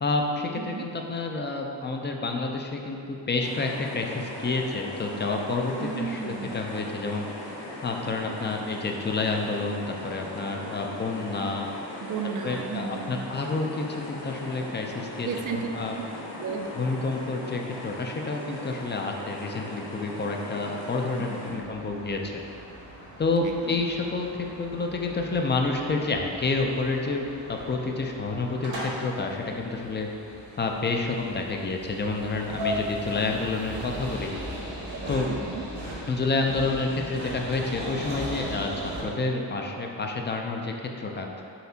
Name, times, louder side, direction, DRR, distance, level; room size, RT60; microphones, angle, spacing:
voice 1, 0.0-7.3 7.8-11.7 12.4-16.0 16.7-22.3 23.2-30.1 30.6-34.3 35.1-35.3 36.1-41.3, left 3 dB, 25° left, 2 dB, 0.4 m, -29 dB
voice 2, 0.6-0.9 5.8-6.5 12.0-13.2 15.2-15.7 16.0-16.1 16.4-16.7 21.2-21.6 23.4-23.8 35.3-35.7, right 6 dB, 45° right, 4 dB, 0.4 m, -34 dB
sound 1, 3.4-21.5, left 1 dB, 60° left, 1.1 m, -39 dB
sound 2, 21.5-39.0, equal, 70° right, 1.2 m, -38 dB
4.1 x 2.7 x 2.7 m, 2.7 s
supercardioid pair, 40°, 45 cm